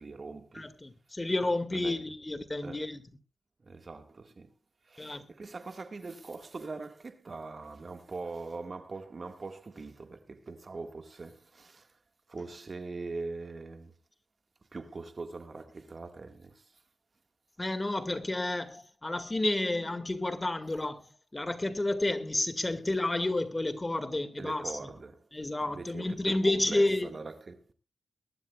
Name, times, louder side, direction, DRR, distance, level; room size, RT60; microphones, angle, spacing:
voice 1, 0.0-0.7 1.7-2.0 2.6-2.9 3.6-4.5 4.8-12.0 12.3-13.9 14.7-16.8 24.4-25.3 25.6-27.7, right 3 dB, 55° right, 1.9 m, -42 dB
voice 2, 0.5-3.0 5.0-5.2 17.6-21.1 21.3-24.6 25.3-27.1, left 2 dB, 25° left, 2.2 m, -30 dB
22.0 x 12.5 x 2.4 m
cardioid pair, 45°, 0 cm